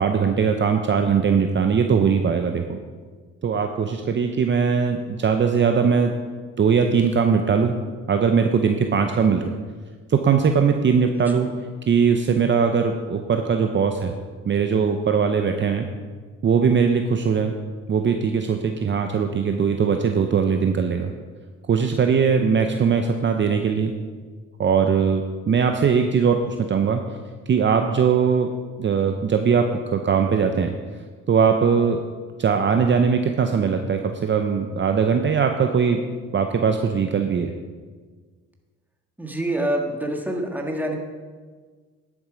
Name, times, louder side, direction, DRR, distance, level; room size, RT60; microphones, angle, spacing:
voice 1, 0.0-2.8 3.4-6.1 6.6-7.8 8.1-9.5 10.1-11.5 11.9-14.1 14.4-15.9 16.4-17.5 17.9-21.1 21.7-23.9 24.6-27.0 27.5-28.5 28.8-29.6 29.9-30.7 31.3-32.0 32.4-36.0 36.3-37.5, right 6 dB, 40° right, 5 dB, 0.7 m, -20 dB
voice 2, 11.2-11.6 39.2-40.9, right 1 dB, 5° right, 1 dB, 1.6 m, -27 dB
10.5 x 7.3 x 5.1 m, 1.5 s
cardioid pair, 90°, 30 cm